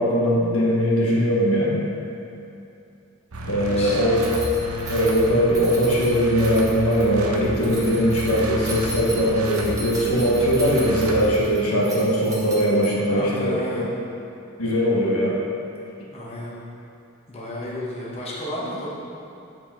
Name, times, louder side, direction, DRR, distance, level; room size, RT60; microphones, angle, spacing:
voice 1, 0.0-1.8 3.5-4.3 4.9-13.9 14.6-15.4, equal, 90° left, -4 dB, 1.4 m, -20 dB
sound 1, 3.3-11.2, right 2 dB, 85° right, 0.8 m, -32 dB
voice 2, 3.4-4.0 12.7-13.9 16.1-16.5 17.3-18.9, left 1 dB, 30° left, -6 dB, 1.1 m, -32 dB
Keys jangling, 4.2-13.2, right 2 dB, 15° right, 1.1 m, -37 dB
9.7 x 5.0 x 3.7 m, 2.7 s
head